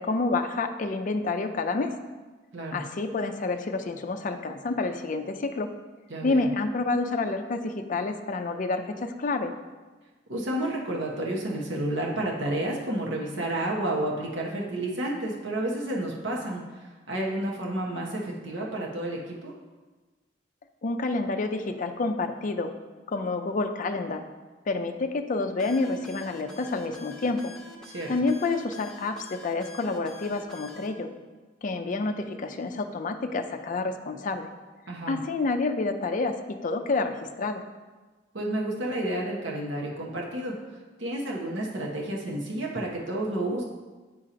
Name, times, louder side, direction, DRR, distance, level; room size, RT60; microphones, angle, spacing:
voice 1, 0.0-1.9 2.7-5.7 6.2-9.5 20.8-22.7 23.1-24.2 24.7-27.5 28.1-31.1 31.6-34.5 35.1-36.4 36.6-37.6, left 3 dB, 45° left, 6 dB, 0.5 m, -28 dB
voice 2, 6.1-6.5 10.3-19.5 27.9-28.1 34.9-35.2 38.3-40.6 41.0-43.6, right 1 dB, 75° right, -2 dB, 0.9 m, -30 dB
sound 1, 25.6-30.9, left 3 dB, 5° left, 0.6 m, -46 dB
8.5 x 2.9 x 5.0 m, 1.3 s
head